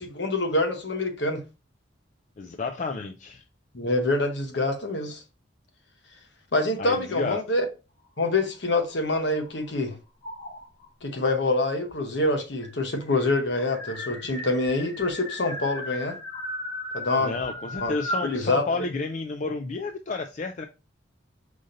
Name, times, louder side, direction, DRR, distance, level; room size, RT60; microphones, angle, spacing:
voice 1, 0.0-1.4 3.7-5.2 6.5-7.6 8.2-9.9 11.0-16.2 16.9-17.3 17.8-17.9 18.2-18.6, left 2 dB, 60° left, 0.9 m, -26 dB
voice 2, 2.4-3.4 6.8-7.4 17.2-20.7, left 3 dB, 40° left, 0.3 m, -31 dB
sound 1, 8.3-9.7 10.2-10.9 11.9-12.0 12.2-12.3 12.6-18.4, left 1 dB, 85° left, 2.6 m, -36 dB
5.0 x 2.7 x 3.8 m
head